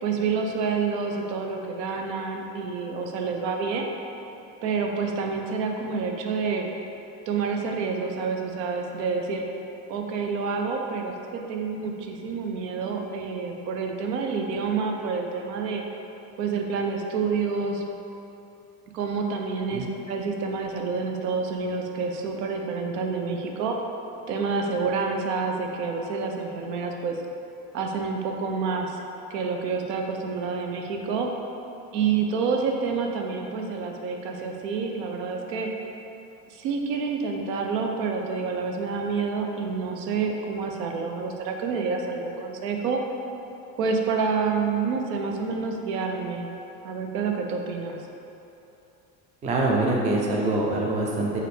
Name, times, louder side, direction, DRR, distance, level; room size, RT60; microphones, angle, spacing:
voice 1, 0.0-3.9 4.6-6.7 7.3-9.4 9.9-15.8 16.4-17.8 18.9-23.8 24.3-27.2 27.7-29.0 29.3-31.3 31.9-35.7 36.5-43.0 43.8-46.5 46.8-48.0, right 5 dB, 75° right, 2 dB, 0.6 m, -28 dB
voice 2, 49.4-51.4, right 2 dB, 15° right, -2 dB, 0.3 m, -24 dB
4.0 x 2.6 x 3.3 m, 2.9 s
hypercardioid pair, 80°, 48 cm